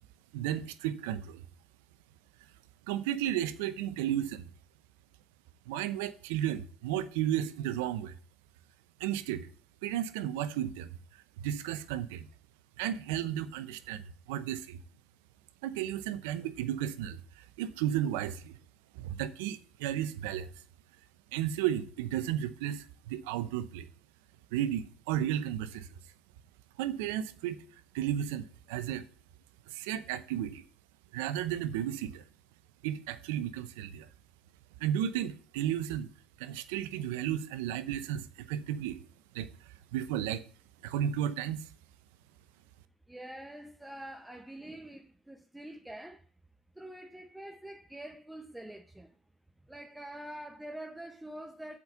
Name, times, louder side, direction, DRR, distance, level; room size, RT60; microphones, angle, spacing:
voice 1, 0.3-1.4 2.9-4.4 5.7-8.1 9.0-9.5 9.8-10.9 11.4-12.3 12.8-14.8 15.6-18.5 18.9-20.5 21.3-23.9 24.5-25.9 26.8-27.6 27.9-29.0 29.7-30.7 31.1-32.2 32.8-34.1 34.8-36.1 36.4-39.0 39.3-39.5 39.9-40.4 40.8-41.7, right 11 dB, 70° right, 0.8 m, -33 dB
voice 2, 43.1-46.3 46.8-49.2 49.7-51.8, right 1 dB, 5° right, 0.7 m, -45 dB
8.0 x 5.4 x 6.7 m
hypercardioid pair, 65°, 0 cm